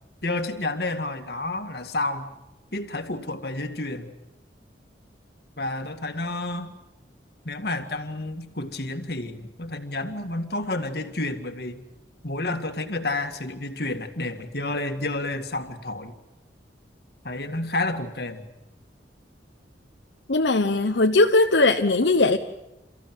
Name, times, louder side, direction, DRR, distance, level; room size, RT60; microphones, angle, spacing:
voice 1, 0.2-2.3 2.7-4.1 5.6-6.7 7.5-11.8 12.2-16.1 17.2-18.5, left 2 dB, 60° left, 7 dB, 2.0 m, -30 dB
voice 2, 20.3-22.4, left 2 dB, 80° left, 4 dB, 1.0 m, -19 dB
29.5 x 14.5 x 9.2 m, 0.95 s
head